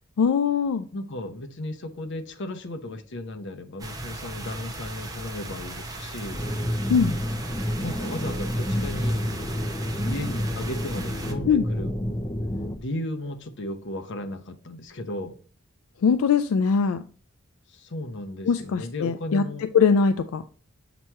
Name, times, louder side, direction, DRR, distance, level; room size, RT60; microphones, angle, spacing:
voice 1, 0.2-0.9 6.9-7.2 11.5-11.6 16.0-17.0 18.5-20.4, left 6 dB, 80° left, 0.3 m, -21 dB
voice 2, 0.9-6.4 7.8-9.2 10.0-11.9 12.7-15.4 17.7-19.7, left 1 dB, 60° left, 0.8 m, -35 dB
sound 1, 3.8-11.3, right 2 dB, 20° right, 0.8 m, -38 dB
sound 2, 6.3-12.8, equal, 15° left, 0.5 m, -29 dB
7.4 x 3.0 x 4.5 m
head